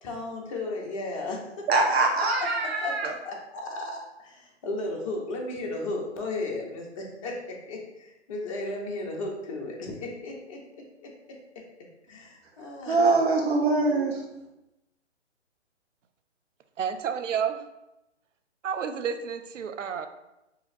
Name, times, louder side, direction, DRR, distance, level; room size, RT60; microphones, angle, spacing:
voice 1, 0.0-1.4 2.4-10.6 11.0-11.6 12.1-13.2, left 2 dB, 30° left, -1 dB, 0.6 m, -35 dB
voice 2, 1.7-3.1 12.9-14.2, right 3 dB, 60° right, 0 dB, 1.0 m, -23 dB
voice 3, 16.8-17.6 18.6-20.1, right 7 dB, 85° right, 9 dB, 0.5 m, -30 dB
3.9 x 2.7 x 2.6 m, 0.92 s
hypercardioid pair, 140°, 36 cm